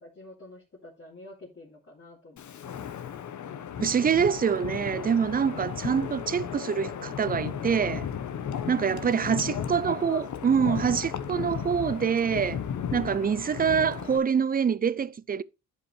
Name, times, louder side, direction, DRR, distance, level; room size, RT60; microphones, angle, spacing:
voice 1, 0.0-2.8 9.3-10.1, left 2 dB, 40° left, 2.8 m, -50 dB
Wind, 2.4-14.2, left 8 dB, 65° left, 1.1 m, -35 dB
voice 2, 3.8-8.1 8.7-12.6 12.9-15.4, right 7 dB, 30° right, 0.5 m, -25 dB
11.0 x 5.3 x 3.3 m
cardioid pair, 105°, 32 cm